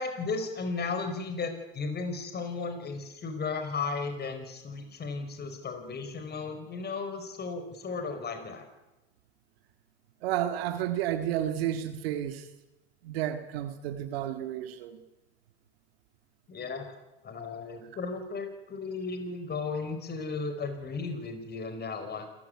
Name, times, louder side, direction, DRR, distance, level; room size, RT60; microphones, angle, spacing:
voice 1, 0.0-8.7 16.5-16.9 17.2-22.3, left 4 dB, 35° left, 7 dB, 5.0 m, -35 dB
voice 2, 10.2-12.5 13.0-15.0, right 11 dB, 80° right, 8 dB, 2.0 m, -31 dB
27.5 x 15.0 x 9.6 m, 1.0 s
hypercardioid pair, 90°, 30 cm